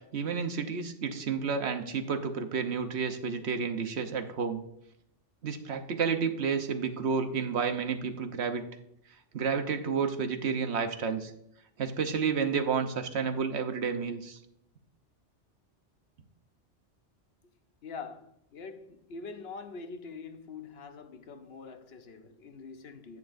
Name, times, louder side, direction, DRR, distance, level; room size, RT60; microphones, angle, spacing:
voice 1, 0.1-4.6 5.4-8.6 9.3-11.3 11.8-14.4, right 6 dB, 65° right, 1.1 m, -30 dB
voice 2, 17.8-23.2, left 4 dB, 60° left, 1.0 m, -44 dB
10.5 x 8.5 x 2.6 m
omnidirectional pair, 1.2 m